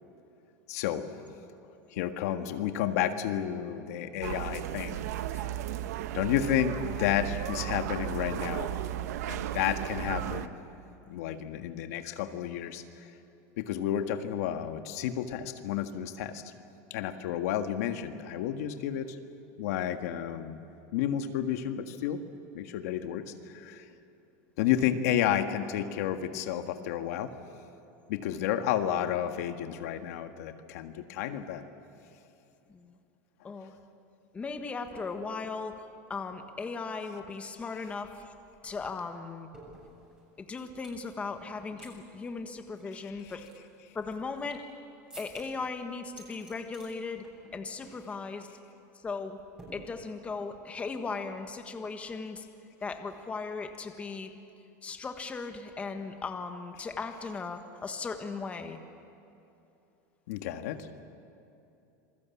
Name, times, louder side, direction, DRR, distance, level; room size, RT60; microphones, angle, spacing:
voice 1, 0.7-1.1 1.9-5.0 5.3-5.5 6.1-8.7 9.2-10.5 11.1-13.1 13.6-16.5 16.9-19.2 19.6-20.6 20.9-22.2 22.5-23.9 24.6-27.3 28.1-31.6 42.9-43.2 60.3-60.8, left 10 dB, 75° left, 7 dB, 1.7 m, -31 dB
sound 1, 4.2-10.5, right 12 dB, 85° right, 1.1 m, -35 dB
voice 2, 33.4-33.8 34.3-35.8 36.1-38.1 38.6-39.5 40.4-43.4 43.9-44.6 45.2-47.2 47.5-48.5 49.0-49.4 49.7-52.5 52.8-54.3 54.8-58.8, left 4 dB, 15° left, 6 dB, 1.5 m, -37 dB
sound 2, 37.7-37.8 38.0-41.0 41.4-41.9 42.2-42.3 42.8-44.7 45.1-45.7 46.0-46.9 47.2-47.5 47.8-48.1 48.4-48.6 49.6-50.3, right 2 dB, 10° right, 7.3 m, -53 dB
27.5 x 21.5 x 8.5 m, 2.8 s
supercardioid pair, 155°, 8 cm